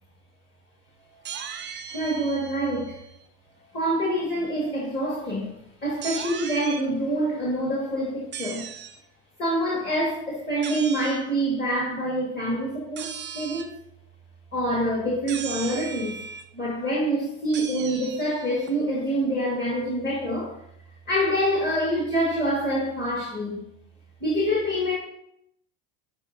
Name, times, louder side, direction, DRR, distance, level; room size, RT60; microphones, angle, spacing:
sound 1, 1.2-3.2 6.0-6.8 8.3-9.0 10.6-11.2 13.0-13.8 15.3-16.4 17.5-18.7, right 8 dB, 25° right, 0.4 m, -37 dB
voice 1, 1.9-3.0 3.7-5.5 5.8-8.6 9.4-13.1 13.3-13.7 14.5-16.2 16.5-20.5 21.1-23.6 24.2-24.9, right 1 dB, 20° left, -4 dB, 1.9 m, -26 dB
8.0 x 4.3 x 2.7 m, 0.78 s
hypercardioid pair, 90°, 48 cm